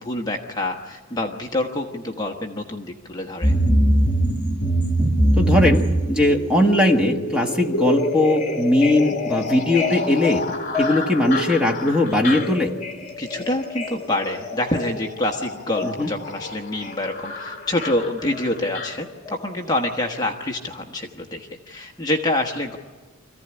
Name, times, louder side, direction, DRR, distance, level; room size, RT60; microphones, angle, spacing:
voice 1, 0.0-3.5 13.2-22.8, left 1 dB, 15° left, 1 dB, 1.2 m, -26 dB
sound 1, 3.4-19.5 19.8-19.9, equal, 35° left, 2.4 m, -24 dB
voice 2, 5.4-10.4 10.8-12.7 15.8-16.1, left 1 dB, 5° right, 1 dB, 1.6 m, -19 dB
26.0 x 15.5 x 9.9 m, 1.4 s
head